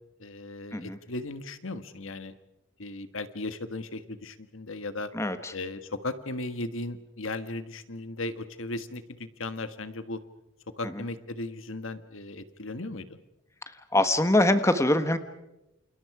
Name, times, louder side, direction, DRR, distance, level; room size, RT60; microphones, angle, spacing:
voice 1, 0.2-2.3 2.8-5.1 5.5-10.2 10.8-13.2, left 2 dB, 80° left, 11 dB, 1.6 m, -36 dB
voice 2, 5.1-5.5 13.9-15.2, left 1 dB, 15° left, 10 dB, 1.3 m, -23 dB
29.0 x 28.5 x 4.9 m, 0.94 s
head